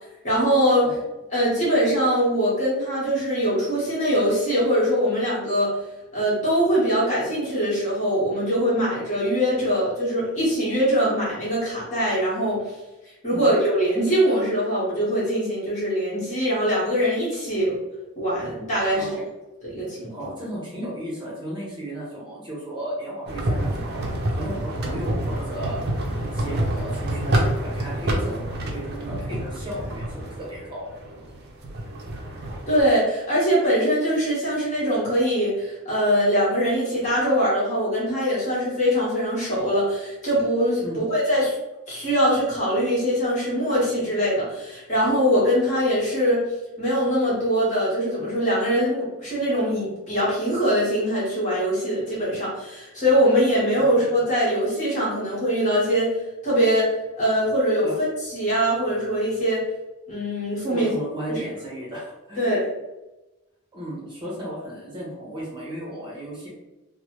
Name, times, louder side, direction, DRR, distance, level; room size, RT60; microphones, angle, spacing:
voice 1, 0.2-0.9 1.3-5.7 6.1-12.6 13.2-17.8 18.2-19.2 19.6-20.1 32.7-41.6 41.9-46.4 46.8-56.1 56.4-57.9 58.3-59.6 60.1-60.9 61.3-61.4 62.4-62.7, equal, 35° left, -8 dB, 1.2 m, -22 dB
voice 2, 18.9-19.3 20.1-25.9 26.2-30.9 31.2-31.4 40.8-41.0 53.8-53.9 57.8-58.0 60.7-62.5 63.7-66.5, right 1 dB, 20° right, -6 dB, 0.8 m, -35 dB
sound 1, 23.3-32.8, right 1 dB, 45° right, 0.5 m, -28 dB
3.0 x 2.1 x 2.9 m, 1.0 s
head